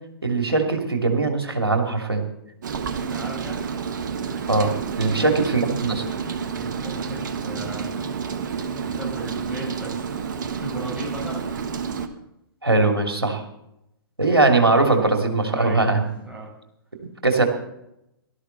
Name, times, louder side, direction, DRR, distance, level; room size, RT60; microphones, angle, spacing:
voice 1, 0.2-2.2 4.5-6.0 12.6-13.4 14.2-16.1 17.2-17.4, right 3 dB, 85° right, 3 dB, 2.8 m, -20 dB
Rain, 2.6-12.1, right 6 dB, 55° right, 1.5 m, -29 dB
voice 2, 2.9-3.6 5.1-5.4 6.5-8.1 8.7-10.2 10.5-11.5 15.6-15.9 16.2-16.5, right 1 dB, 5° right, -4 dB, 7.3 m, -36 dB
17.5 x 13.0 x 4.1 m, 0.81 s
figure-of-eight pair, 120°, 12 cm